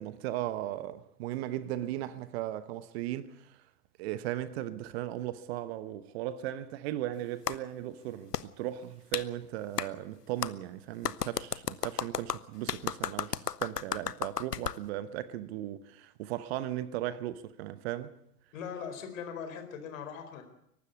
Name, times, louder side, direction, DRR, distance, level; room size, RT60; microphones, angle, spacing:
voice 1, 0.0-3.6 4.0-18.1, right 13 dB, 45° right, 1.1 m, -37 dB
Clapping, 7.5-7.6 8.3-8.4 9.1-9.3 9.8-9.9 10.4-10.5 11.0-14.8, left 8 dB, 90° left, 0.8 m, -33 dB
voice 2, 18.5-20.4, left 7 dB, 55° left, 4.6 m, -40 dB
22.5 x 12.5 x 9.3 m
figure-of-eight pair, 105°, 46 cm